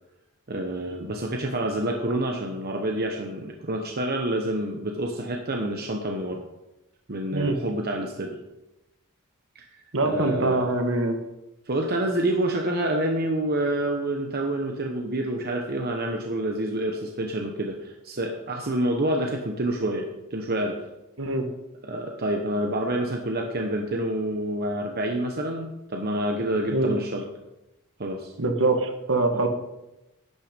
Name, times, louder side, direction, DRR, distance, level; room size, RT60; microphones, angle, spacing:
voice 1, 0.5-6.4 7.1-8.4 9.5-9.7 10.0-10.6 11.7-20.8 21.8-27.2 28.0-28.3 29.3-29.4, right 1 dB, 45° right, 2 dB, 1.1 m, -28 dB
voice 2, 9.9-11.2 21.2-21.5 26.7-26.9 28.4-29.5, right 2 dB, 65° right, 6 dB, 1.6 m, -24 dB
11.5 x 9.2 x 5.2 m, 0.95 s
head